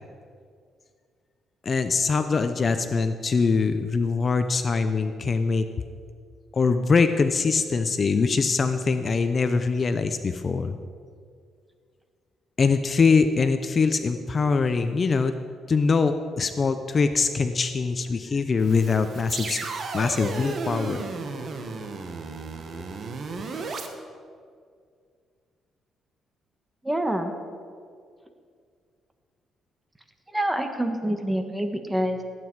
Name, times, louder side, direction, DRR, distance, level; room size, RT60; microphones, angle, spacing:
voice 1, 1.6-5.7 6.5-10.8 12.6-15.3 15.7-19.6 19.9-21.0, left 4 dB, 40° left, 9 dB, 0.6 m, -23 dB
sound 1, 18.6-23.9, right 4 dB, 50° right, 1.4 m, -34 dB
voice 2, 26.8-27.3 30.3-32.2, right 1 dB, 10° right, 6 dB, 1.4 m, -26 dB
18.0 x 9.3 x 4.7 m, 2.1 s
cardioid pair, 90°, 0 cm